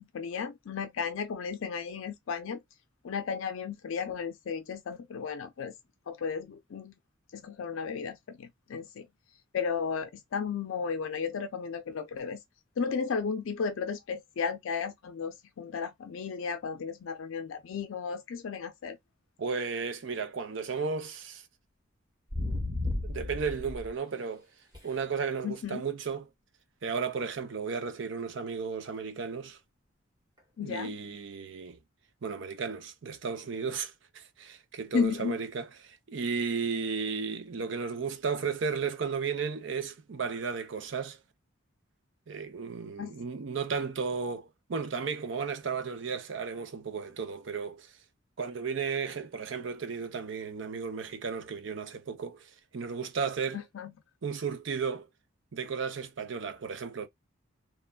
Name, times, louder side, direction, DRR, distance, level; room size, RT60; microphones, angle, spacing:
voice 1, 0.0-2.6 3.0-5.7 6.1-6.9 7.3-9.1 9.5-12.4 12.8-19.0 25.4-25.8 30.6-30.9 34.9-35.4 43.0-43.1 53.5-53.9, left 6 dB, 75° left, 0.4 m, -34 dB
voice 2, 19.4-21.4 23.0-24.5 24.8-26.3 26.8-29.6 30.6-31.8 32.2-41.2 42.3-47.9 48.4-53.6 54.2-55.1 55.5-57.1, right 5 dB, 60° right, 0.5 m, -34 dB
sound 1, 22.3-23.9 24.7-24.9 30.8-30.9, left 2 dB, 20° right, 1.0 m, -33 dB
3.0 x 2.2 x 2.2 m
head